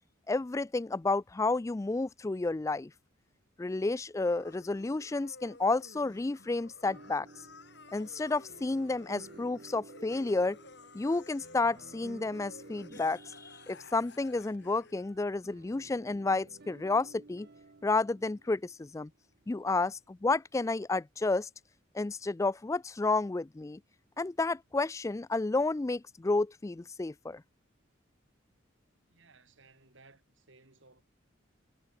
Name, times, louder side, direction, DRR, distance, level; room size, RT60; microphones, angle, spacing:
voice 1, 0.3-2.9 3.6-7.3 7.9-10.6 10.9-17.5 17.8-19.1 19.5-21.5 21.9-23.8 24.2-27.4, left 3 dB, 15° left, 0.3 m, -31 dB
sound 1, 4.2-14.9, left 3 dB, 60° left, 6.1 m, -54 dB
sound 2, 6.9-19.3, right 3 dB, 50° right, 0.8 m, -54 dB
voice 2, 29.1-31.0, right 3 dB, 65° right, 3.0 m, -60 dB
head